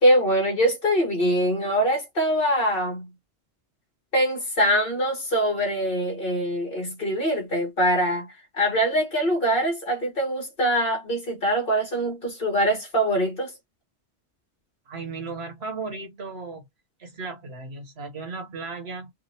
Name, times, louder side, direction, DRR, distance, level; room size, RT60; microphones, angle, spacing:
voice 1, 0.0-3.1 4.1-8.3 8.5-13.5, equal, 55° left, 2.0 m, -23 dB
voice 2, 14.9-16.7 17.0-19.1, right 4 dB, 70° right, 1.5 m, -35 dB
5.1 x 2.4 x 2.9 m
omnidirectional pair, 1.1 m